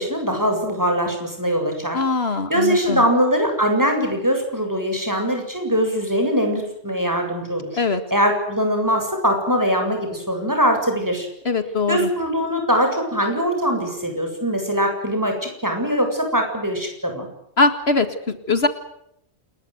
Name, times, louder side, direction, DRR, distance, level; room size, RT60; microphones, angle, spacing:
voice 1, 0.0-2.0 2.5-7.8 8.1-11.3 11.9-17.3, equal, 15° right, 4 dB, 7.8 m, -22 dB
voice 2, 1.9-3.0 7.8-8.0 11.5-12.1 17.6-18.7, left 3 dB, 65° left, 9 dB, 2.2 m, -21 dB
28.5 x 21.0 x 7.9 m, 0.77 s
omnidirectional pair, 1.1 m